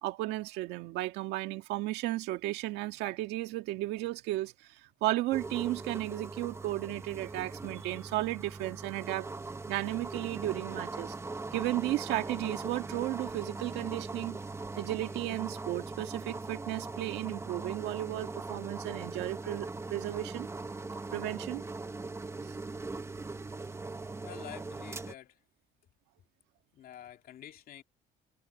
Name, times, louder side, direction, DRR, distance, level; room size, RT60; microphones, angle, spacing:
voice 1, 0.0-9.3 9.7-11.2 11.5-14.4 14.8-20.5 21.1-21.6 22.4-22.5, right 17 dB, 90° right, 1.9 m, -34 dB
sound 1, 5.3-25.1, right 3 dB, 15° right, 1.1 m, -40 dB
voice 2, 24.2-25.4 26.7-27.8, left 11 dB, 60° left, 2.7 m, -48 dB
cardioid pair, 110°, 17 cm